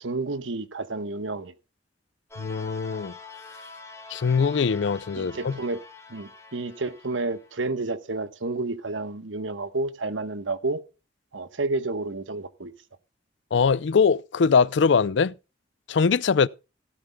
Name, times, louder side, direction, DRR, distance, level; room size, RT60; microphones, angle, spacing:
voice 1, 0.0-1.5 5.2-5.8 6.1-10.8 11.3-12.7, right 3 dB, 90° right, 1.2 m, -30 dB
sound 1, 2.3-7.5, left 3 dB, 15° left, 3.6 m, -45 dB
voice 2, 2.4-3.1 4.1-5.6 13.5-15.3 15.9-16.5, left 5 dB, 65° left, 0.5 m, -22 dB
17.0 x 12.5 x 2.2 m
head